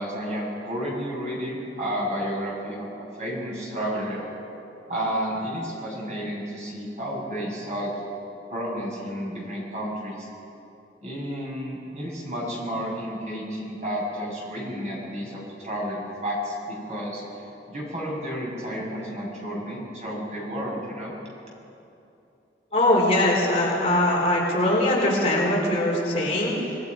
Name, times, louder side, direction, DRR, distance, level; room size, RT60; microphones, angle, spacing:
voice 1, 0.0-2.9 3.2-4.2 4.9-7.9 8.5-10.3 11.0-17.2 17.7-21.1, equal, 40° right, -4 dB, 6.6 m, -31 dB
voice 2, 22.7-26.6, left 1 dB, 35° left, -4 dB, 4.5 m, -21 dB
27.5 x 20.5 x 5.4 m, 2.8 s
head